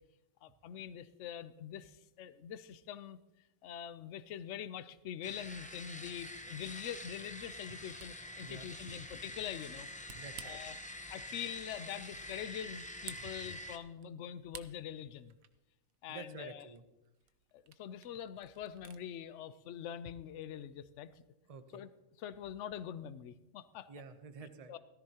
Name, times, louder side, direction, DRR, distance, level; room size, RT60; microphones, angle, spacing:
voice 1, 0.4-3.2 3.6-9.9 10.4-10.8 11.1-15.4 16.0-16.7 17.5-21.2 21.7-21.9 22.2-23.9 24.7-24.8, left 9 dB, 65° left, 14 dB, 0.9 m, -44 dB
sound 1, 5.2-13.8, left 1 dB, 10° left, 0.5 m, -47 dB
Camera, 7.9-19.0, right 9 dB, 85° right, 1.2 m, -57 dB
voice 2, 10.1-10.6 13.2-13.3 16.1-16.8 21.5-21.8 23.9-24.7, right 5 dB, 35° right, 9 dB, 0.7 m, -49 dB
16.5 x 14.0 x 2.9 m, 0.97 s
omnidirectional pair, 1.4 m